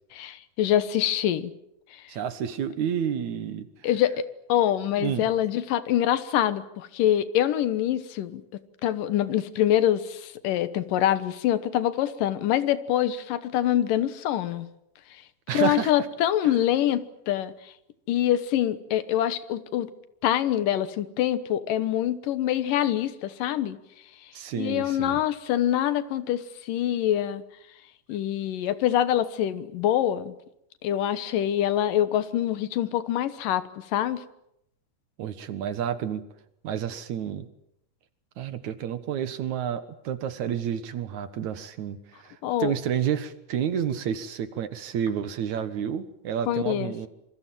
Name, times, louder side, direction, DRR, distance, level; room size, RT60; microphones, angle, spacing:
voice 1, 0.1-1.5 1.9-2.0 3.8-8.4 8.8-14.7 15.1-15.2 15.5-17.7 18.1-19.9 20.2-23.8 24.6-27.4 28.1-30.4 30.8-34.2 42.4-42.7 46.5-47.1, left 11 dB, 80° left, 14 dB, 2.8 m, -25 dB
voice 2, 2.1-3.7 5.0-5.3 15.5-15.9 24.3-25.2 35.2-36.2 36.6-37.5 38.4-47.1, right 9 dB, 65° right, 12 dB, 2.6 m, -30 dB
26.5 x 24.0 x 7.6 m, 0.79 s
omnidirectional pair, 3.8 m